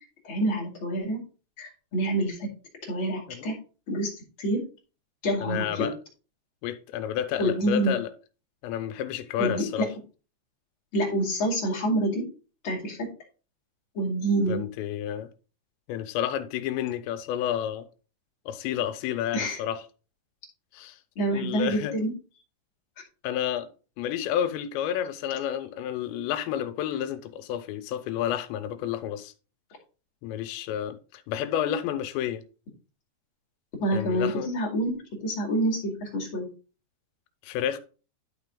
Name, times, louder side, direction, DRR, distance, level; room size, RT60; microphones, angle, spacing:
voice 1, 0.2-1.2 1.6-2.4 2.8-3.6 3.9-4.1 4.4-4.6 5.2-5.9 7.4-7.9 9.4-9.9 10.9-12.2 12.6-13.0 13.9-14.6 19.3-19.6 21.2-22.1 33.8-36.5, right 1 dB, 40° left, 2.1 m, -27 dB
voice 2, 5.4-5.9 6.6-8.1 8.6-9.9 14.5-15.3 15.9-17.9 18.5-19.8 20.7-21.9 23.2-23.7 24.0-29.3 30.2-32.4 33.9-34.5 37.4-37.8, left 10 dB, 85° left, 2.9 m, -30 dB
11.5 x 4.1 x 3.7 m
omnidirectional pair, 5.2 m